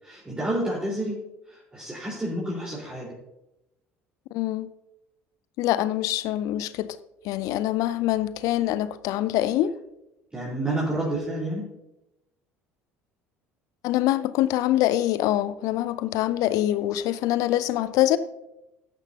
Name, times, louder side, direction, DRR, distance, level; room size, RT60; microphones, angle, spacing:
voice 1, 0.0-1.1 1.5-3.1 10.3-11.7, right 1 dB, 15° right, 4.5 m, -29 dB
voice 2, 4.3-4.7 5.6-6.9 7.2-9.7 13.8-18.2, left 14 dB, 60° left, 0.6 m, -24 dB
14.0 x 10.5 x 2.9 m
hypercardioid pair, 60°, 7 cm